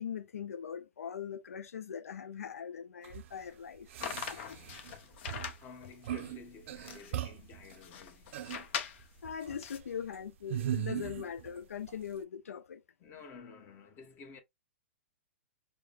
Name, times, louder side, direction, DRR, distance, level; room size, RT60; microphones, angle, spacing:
voice 1, 0.0-4.6 9.2-12.8, left 8 dB, 90° left, 0.4 m, -41 dB
sound 1, 3.0-3.2 3.9-5.0 5.3-5.6 6.0-6.4 6.7-7.6 8.3-8.6 9.2-9.6 10.5-11.6 11.9-12.0, right 12 dB, 60° right, 0.4 m, -38 dB
sound 2, 4.0-9.8, left 8 dB, 50° left, 0.7 m, -42 dB
voice 2, 5.6-8.4 13.0-14.4, left 5 dB, 30° left, 1.0 m, -51 dB
4.8 x 2.1 x 2.4 m
hypercardioid pair, 130°, 8 cm